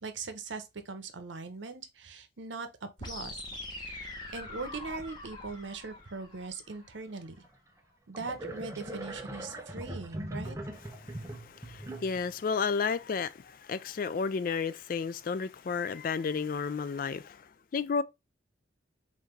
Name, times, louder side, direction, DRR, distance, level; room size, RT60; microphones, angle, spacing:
voice 1, 0.0-3.4 3.8-7.3 8.1-10.6, right 4 dB, 80° right, 0.8 m, -41 dB
sound 1, 3.0-7.0, left 2 dB, 25° left, 1.1 m, -43 dB
sound 2, 7.4-7.5 8.1-12.4, right 1 dB, 15° right, 0.7 m, -41 dB
voice 2, 11.0-18.0, left 5 dB, 50° left, 0.3 m, -32 dB
5.6 x 2.7 x 3.1 m
head